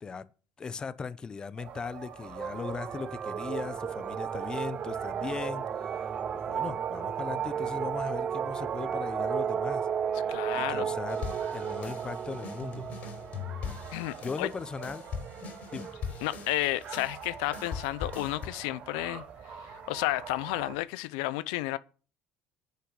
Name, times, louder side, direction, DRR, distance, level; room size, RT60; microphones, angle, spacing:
voice 1, 0.6-6.1 6.3-9.9 10.5-12.9 14.2-15.0 15.7-16.0, left 5 dB, 25° left, 0.8 m, -38 dB
sound 1, 1.6-20.7, right 7 dB, 55° right, 2.8 m, -45 dB
sound 2, 2.4-14.2, right 8 dB, 40° right, 0.6 m, -33 dB
voice 2, 10.3-10.9 13.9-14.5 16.2-21.8, left 18 dB, 90° left, 0.5 m, -32 dB
sound 3, 11.1-18.5, left 6 dB, 55° left, 3.7 m, -41 dB
10.0 x 5.7 x 7.8 m
cardioid pair, 110°, 3 cm